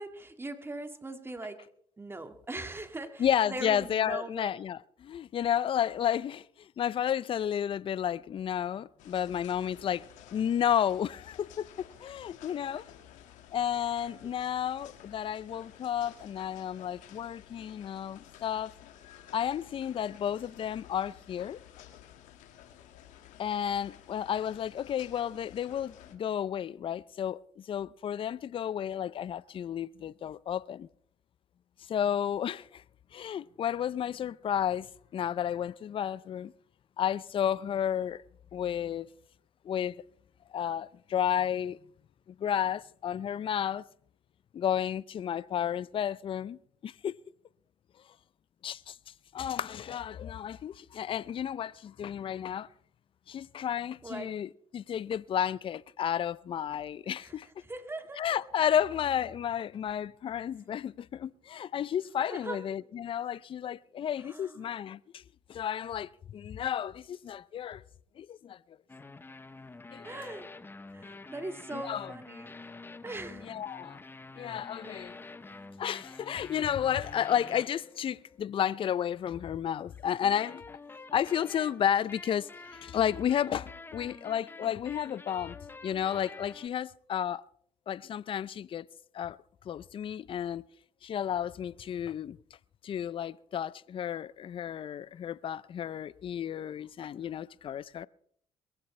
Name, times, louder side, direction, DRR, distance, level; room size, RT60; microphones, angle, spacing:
voice 1, 0.0-1.7 2.0-4.5 12.5-12.6 54.0-54.3 57.2-57.3 57.7-58.4 62.3-62.6 64.2-64.7 70.0-70.5 70.9-72.7 73.0-73.6 74.8-75.0, right 2 dB, 20° right, 1.9 m, -41 dB
voice 2, 3.2-12.9 13.5-18.7 19.3-21.6 23.4-30.9 31.9-32.8 33.1-34.9 35.1-36.5 37.0-38.2 38.5-39.1 39.6-40.0 40.5-41.8 42.3-43.8 44.5-47.1 48.6-49.0 49.3-52.7 53.3-57.5 58.2-65.2 65.5-67.8 68.2-68.6 69.9-70.1 71.7-72.1 73.4-74.0 74.4-75.2 75.8-80.6 81.1-85.6 85.8-87.4 87.9-88.8 89.1-89.4 89.7-90.6 91.0-92.4 92.8-98.1, left 9 dB, 45° left, 0.5 m, -32 dB
sound 1, 9.0-26.2, left 10 dB, 75° left, 2.0 m, -54 dB
sound 2, 68.9-78.4 79.9-86.7, left 3 dB, 15° left, 0.9 m, -48 dB
22.0 x 15.5 x 3.3 m
supercardioid pair, 75°, 13 cm